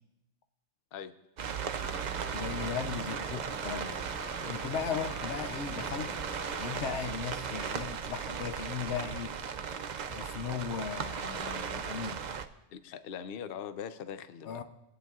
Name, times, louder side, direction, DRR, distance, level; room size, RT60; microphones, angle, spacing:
sound 1, 1.4-12.5, right 7 dB, 55° right, 0.5 m, -37 dB
sound 2, 1.8-7.2, equal, 20° right, 1.3 m, -46 dB
voice 1, 2.3-4.0 4.5-6.1 6.6-9.4 10.1-12.3 14.4-14.6, left 7 dB, 85° left, 8 dB, 1.0 m, -37 dB
voice 2, 12.7-14.6, left 8 dB, 65° left, 11 dB, 0.7 m, -41 dB
26.0 x 9.1 x 2.4 m, 0.92 s
omnidirectional pair, 1.1 m